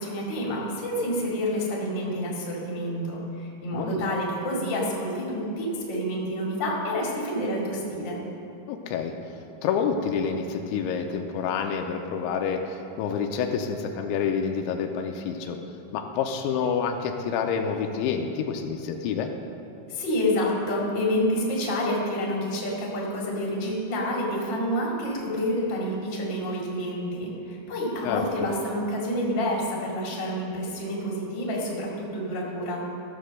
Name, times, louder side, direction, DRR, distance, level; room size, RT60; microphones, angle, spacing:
voice 1, 0.0-8.2 19.9-32.8, equal, 35° left, -3 dB, 2.2 m, -28 dB
voice 2, 3.7-4.1 8.7-9.1 9.6-15.6 15.9-19.3 28.0-28.5, left 6 dB, 85° left, 4 dB, 3.0 m, -28 dB
15.0 x 7.5 x 6.5 m, 2.8 s
omnidirectional pair, 5.3 m